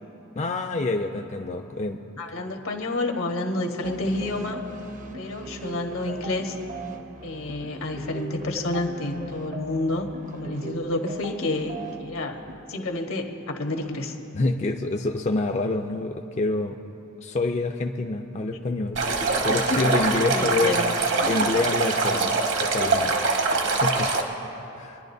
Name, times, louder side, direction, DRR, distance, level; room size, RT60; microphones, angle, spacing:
voice 1, 0.3-2.0 14.3-16.8 17.2-19.0 19.4-20.7 21.3-22.3 22.6-23.2 23.4-24.1 24.8-25.0, left 2 dB, 35° left, 4 dB, 0.4 m, -27 dB
voice 2, 2.2-4.6 5.1-6.6 7.2-10.1 10.3-12.4 12.7-14.1 19.5-19.9 20.3-21.0 21.2-21.3 22.1-22.3, left 2 dB, 80° left, 3 dB, 1.3 m, -29 dB
sound 1, 3.8-12.6, right 2 dB, 40° right, 0.7 m, -40 dB
Stream, 19.0-24.2, right 3 dB, 60° right, 1.1 m, -23 dB
25.0 x 11.0 x 2.7 m, 2.9 s
head